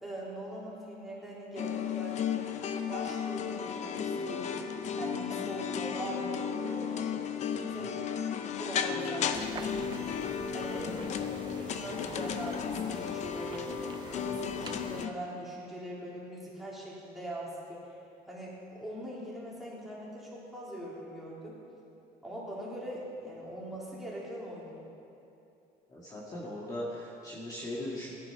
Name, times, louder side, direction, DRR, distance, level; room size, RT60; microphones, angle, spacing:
voice 1, 0.0-2.2 2.8-7.1 7.6-10.0 10.5-13.7 14.1-17.9 18.3-21.6 22.2-24.8, equal, ahead, -7 dB, 3.3 m, -42 dB
sound 1, 1.6-15.1, left 7 dB, 45° left, 0.7 m, -34 dB
voice 2, 7.5-7.9 10.6-11.2 25.9-28.1, left 1 dB, 20° left, -5 dB, 1.8 m, -40 dB
sound 2, 9.3-15.1, right 6 dB, 30° right, 0.6 m, -47 dB
17.0 x 11.0 x 5.7 m, 2.7 s
cardioid pair, 165°, 16 cm